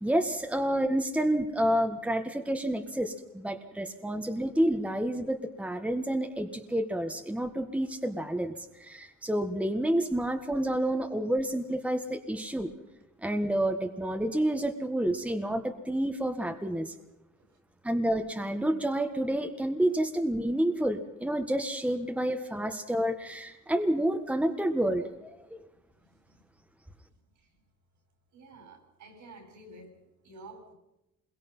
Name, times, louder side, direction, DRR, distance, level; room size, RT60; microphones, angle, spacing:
voice 1, 0.0-12.7 13.2-16.9 17.8-25.6, right 1 dB, 5° right, 5 dB, 1.7 m, -29 dB
voice 2, 28.3-29.9 30.2-30.7, right 2 dB, 75° right, 4 dB, 6.5 m, -49 dB
27.0 x 22.5 x 5.7 m, 0.91 s
cardioid pair, 90°, 30 cm